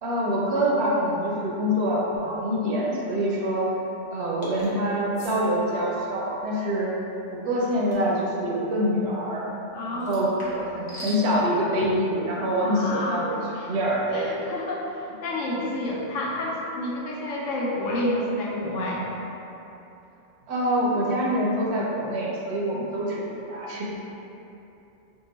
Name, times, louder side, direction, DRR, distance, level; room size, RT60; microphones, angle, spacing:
voice 1, 0.0-3.7 4.1-6.9 7.3-9.5 9.9-13.4 13.7-14.3 20.5-23.9, equal, 65° right, -4 dB, 0.8 m, -25 dB
sound 1, 4.4-4.7 5.1-5.4 7.9-8.1 10.0-11.2, equal, 40° left, 0.7 m, -41 dB
voice 2, 9.7-10.2 12.5-13.2 13.6-13.7 14.1-19.0, left 1 dB, 90° left, -3 dB, 1.0 m, -29 dB
2.8 x 2.3 x 3.9 m, 2.9 s
omnidirectional pair, 1.3 m